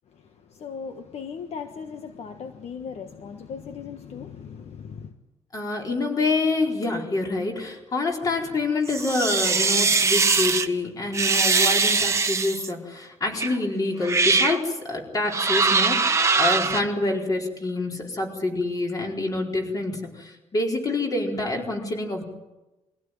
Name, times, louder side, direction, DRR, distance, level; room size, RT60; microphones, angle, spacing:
voice 1, 0.1-5.1, left 6 dB, 60° left, 1.4 m, -38 dB
voice 2, 5.5-22.3, left 2 dB, 30° left, 4.4 m, -27 dB
sound 1, 8.9-10.7 11.1-12.7 13.4-13.5 14.0-14.6 15.3-16.8, right 4 dB, 25° right, 1.3 m, -21 dB
23.0 x 16.5 x 9.2 m
cardioid pair, 145°, 12 cm